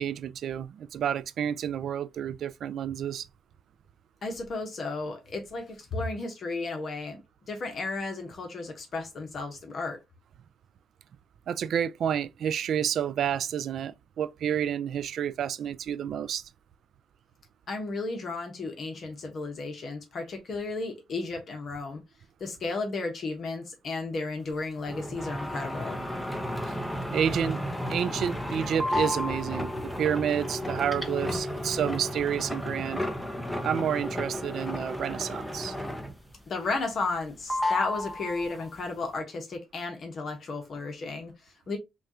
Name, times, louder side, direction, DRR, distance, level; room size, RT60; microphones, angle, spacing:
voice 1, 0.0-3.3 11.5-16.4 27.1-27.6 27.9-33.0 33.6-35.8, right 9 dB, 65° right, 0.3 m, -30 dB
voice 2, 4.2-7.2 7.5-10.0 17.7-22.0 22.4-26.0 36.5-41.8, left 3 dB, 50° left, 1.1 m, -34 dB
sound 1, 24.9-36.3 36.7-37.2 37.5-38.8, left 1 dB, 5° left, 0.8 m, -33 dB
5.3 x 2.4 x 2.8 m
cardioid pair, 90°, 0 cm